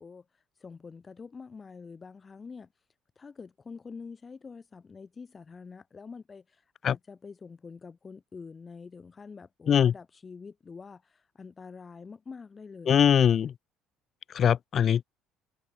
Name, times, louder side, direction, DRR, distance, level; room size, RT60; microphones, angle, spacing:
voice 1, 0.0-2.9 3.2-13.2, left 5 dB, 30° left, 4.4 m, -46 dB
voice 2, 12.9-13.5 14.4-15.0, left 8 dB, 45° left, 0.3 m, -21 dB
supercardioid pair, 90°, 0 cm